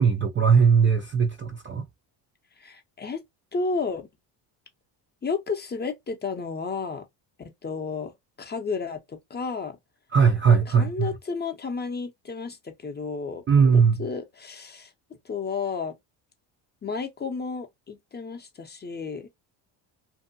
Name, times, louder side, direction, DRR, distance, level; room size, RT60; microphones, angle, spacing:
voice 1, 0.0-1.8 10.1-11.1 13.5-14.0, right 6 dB, 30° right, 0.4 m, -19 dB
voice 2, 2.6-3.2 3.5-4.1 5.2-7.0 7.6-8.1 8.4-9.8 10.5-14.9 15.2-15.9 16.8-19.3, left 4 dB, 20° left, 0.6 m, -32 dB
2.7 x 2.2 x 2.5 m
cardioid pair, 105°, 47 cm